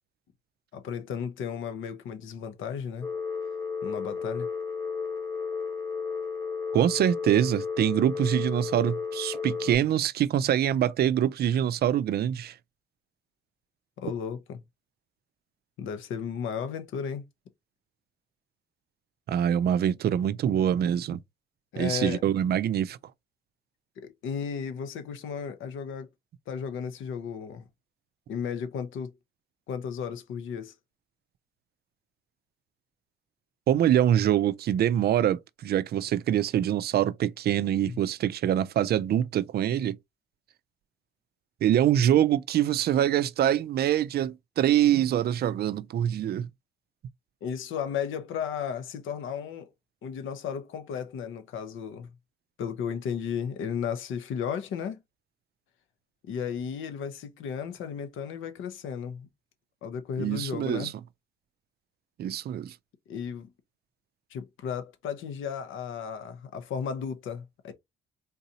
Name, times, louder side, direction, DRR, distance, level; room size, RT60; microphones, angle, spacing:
voice 1, 0.7-3.1 3.8-4.5 14.0-14.6 15.8-17.2 21.7-22.2 24.0-26.1 26.5-27.6 28.3-29.1 29.7-30.7 37.8-38.0 47.4-49.7 50.0-52.1 52.6-55.0 56.2-59.3 59.8-60.9 63.1-63.5 64.3-67.7, left 7 dB, 80° left, 0.8 m, -34 dB
Telephone, 3.0-9.7, left 5 dB, 15° left, 1.1 m, -33 dB
voice 2, 6.7-12.5 19.3-21.2 21.8-23.0 33.7-40.0 41.6-46.5 60.2-60.9 62.2-62.7, right 10 dB, 55° right, 0.4 m, -24 dB
3.8 x 2.7 x 2.7 m
cardioid pair, 90°, 20 cm